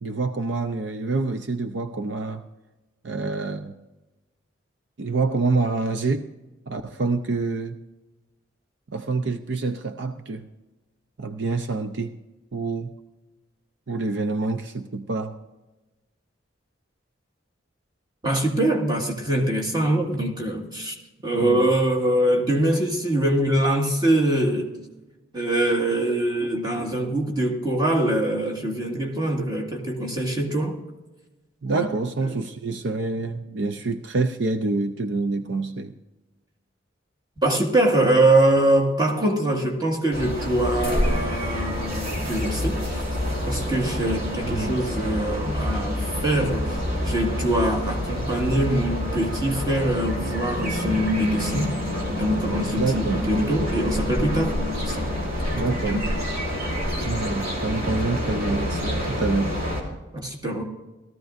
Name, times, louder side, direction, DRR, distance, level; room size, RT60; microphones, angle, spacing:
voice 1, 0.0-2.4 3.0-3.8 5.0-6.3 6.7-7.8 8.9-10.4 11.2-12.2 12.5-12.9 13.9-15.3 21.3-21.7 31.6-35.9 44.4-44.8 52.8-53.2 55.5-56.1 57.0-59.6, right 3 dB, 65° right, 8 dB, 0.5 m, -27 dB
voice 2, 18.2-20.9 21.2-24.8 25.3-30.8 31.7-31.9 32.3-32.4 37.4-43.0 43.4-51.7 52.1-54.6 54.8-55.1 55.7-56.0 60.1-60.6, right 1 dB, 20° right, 0 dB, 1.8 m, -23 dB
sound 1, 40.1-59.8, left 1 dB, 45° right, 3.0 m, -27 dB
17.5 x 14.0 x 2.5 m, 1.1 s
head